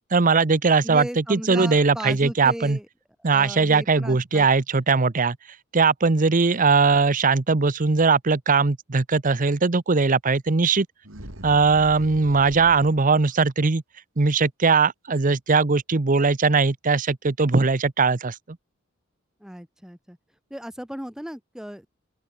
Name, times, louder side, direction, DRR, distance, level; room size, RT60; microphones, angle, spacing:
voice 1, 0.1-2.8 3.2-5.4 5.7-10.9 11.4-13.8 14.2-18.4, right 4 dB, 40° right, 0.8 m, -20 dB
voice 2, 0.8-2.9 3.2-4.5 19.4-20.2 20.5-21.9, equal, 5° right, 1.4 m, -36 dB
sound 1, 11.0-13.2, right 1 dB, 80° right, 6.0 m, -41 dB
open air
head